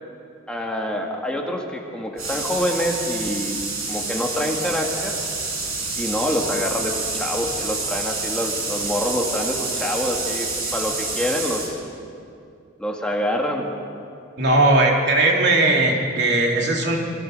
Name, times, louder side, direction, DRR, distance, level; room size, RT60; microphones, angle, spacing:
voice 1, 0.5-3.6 3.9-5.1 6.0-11.8 12.8-13.7, left 1 dB, 5° left, 0 dB, 1.9 m, -26 dB
sound 1, 2.2-11.7, right 3 dB, 85° right, 5.9 m, -28 dB
voice 2, 14.4-17.0, right 2 dB, 55° right, 0 dB, 3.3 m, -18 dB
27.0 x 23.5 x 6.6 m, 2.5 s
head